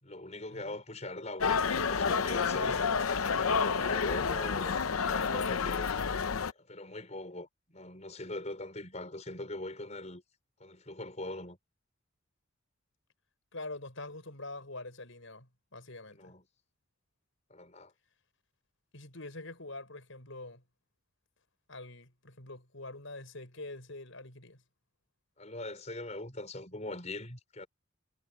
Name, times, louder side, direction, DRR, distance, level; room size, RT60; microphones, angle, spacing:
voice 1, 0.0-2.8 3.3-6.0 6.5-10.2 10.6-11.6 16.1-16.4 17.5-17.9 25.4-27.7, left 2 dB, 35° left, 5.1 m, -42 dB
sound 1, 1.4-6.5, left 5 dB, 85° left, 0.7 m, -29 dB
voice 2, 13.5-16.3 18.9-20.6 21.7-24.6, left 2 dB, 65° left, 6.4 m, -45 dB
head